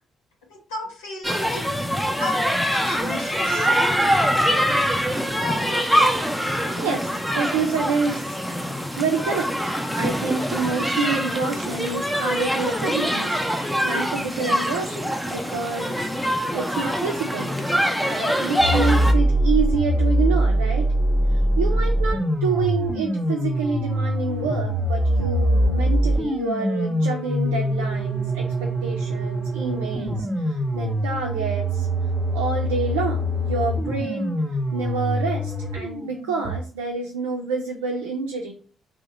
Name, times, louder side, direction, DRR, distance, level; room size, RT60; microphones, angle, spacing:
voice 1, 0.5-1.7 2.2-2.4 2.7-3.7, left 2 dB, 85° left, -2 dB, 0.5 m, -34 dB
sound 1, 1.2-19.1, equal, ahead, 0.6 m, -24 dB
voice 2, 6.8-8.4 9.0-16.0 16.5-17.5 18.0-20.9 21.6-31.9 32.3-34.4 34.7-38.5, right 4 dB, 85° right, -1 dB, 0.4 m, -28 dB
sound 2, 18.6-36.6, equal, 25° right, 0.9 m, -23 dB
2.9 x 2.0 x 3.6 m, 0.42 s
hypercardioid pair, 45°, 0 cm